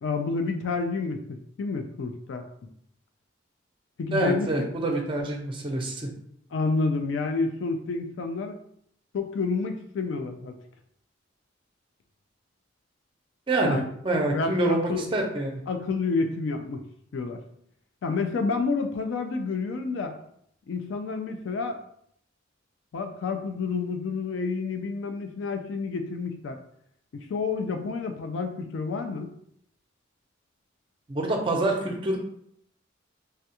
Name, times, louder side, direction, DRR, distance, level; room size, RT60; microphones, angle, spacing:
voice 1, 0.0-2.7 4.0-5.0 6.5-8.6 9.1-10.6 13.6-13.8 14.3-15.1 15.7-16.8 17.1-17.4 18.0-20.2 20.7-21.8 22.9-26.6 27.3-29.3, left 4 dB, 70° left, 6 dB, 0.3 m, -29 dB
voice 2, 4.1-6.1 13.5-13.8 14.0-15.6 31.1-32.2, right 1 dB, 25° right, 1 dB, 0.5 m, -26 dB
3.3 x 2.3 x 2.8 m, 0.69 s
head